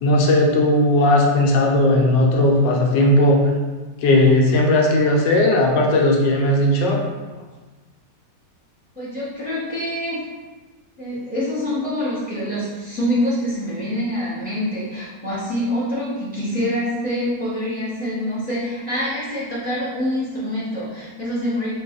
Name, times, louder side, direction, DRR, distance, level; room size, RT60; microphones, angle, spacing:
voice 1, 0.0-3.4 4.0-7.0, left 1 dB, 85° left, 0 dB, 1.3 m, -16 dB
voice 2, 9.0-10.3 11.0-21.8, equal, 10° right, -10 dB, 0.5 m, -25 dB
3.9 x 2.3 x 3.9 m, 1.3 s
omnidirectional pair, 1.9 m